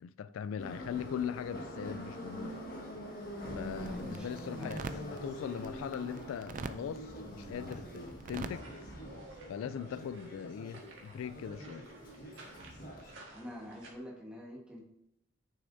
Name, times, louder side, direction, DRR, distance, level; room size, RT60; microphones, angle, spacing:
voice 1, 0.0-2.6 3.5-8.7 9.5-11.9, left 8 dB, 90° left, 0.3 m, -40 dB
Subway metro underground, 0.6-13.1, equal, 45° left, 1.6 m, -45 dB
sound 1, 3.6-8.6, right 3 dB, 40° right, 0.4 m, -46 dB
voice 2, 3.8-5.1 13.3-14.8, equal, 5° right, 1.4 m, -47 dB
sound 2, 8.5-13.9, right 1 dB, 75° right, 1.6 m, -54 dB
9.2 x 6.6 x 2.7 m
head